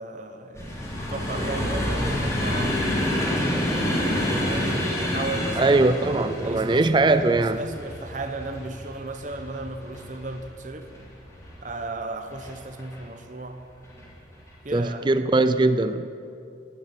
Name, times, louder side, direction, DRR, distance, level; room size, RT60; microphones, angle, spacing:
voice 1, 0.0-2.8 4.2-5.9 6.4-10.9 11.6-13.7 14.6-15.0, right 2 dB, 40° right, 6 dB, 0.8 m, -35 dB
sound 1, 0.5-11.7 12.3-13.0 13.8-14.0 14.3-14.5, left 1 dB, 15° left, 2.9 m, -28 dB
voice 2, 5.6-7.6 14.7-16.1, right 2 dB, 25° right, 11 dB, 0.4 m, -21 dB
17.5 x 7.1 x 10.0 m, 2.6 s
head